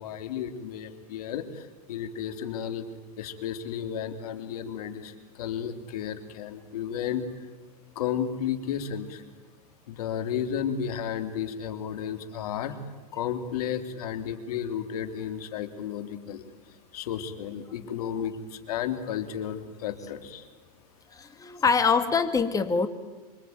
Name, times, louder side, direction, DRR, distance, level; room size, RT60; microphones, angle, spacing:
voice 1, 0.0-2.8 3.2-7.5 7.9-9.2 9.9-12.7 13.1-16.4 16.9-20.5, left 8 dB, 80° left, 8 dB, 3.2 m, -33 dB
voice 2, 21.2-22.9, left 5 dB, 20° left, 9 dB, 2.2 m, -24 dB
26.5 x 24.0 x 9.4 m, 1.2 s
supercardioid pair, 125°, 19 cm